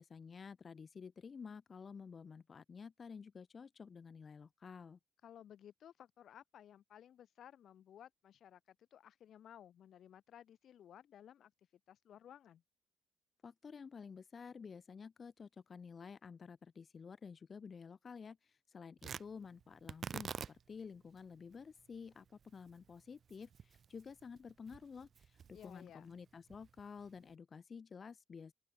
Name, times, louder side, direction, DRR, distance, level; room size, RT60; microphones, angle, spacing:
voice 1, 0.0-5.0 13.4-28.5, left 5 dB, 40° left, 2.4 m, -51 dB
voice 2, 5.2-11.5 11.9-12.6 25.5-26.2, left 10 dB, 65° left, 2.8 m, -58 dB
Tearing, 19.0-27.3, right 7 dB, 50° right, 1.7 m, -50 dB
open air
cardioid pair, 90°, 0 cm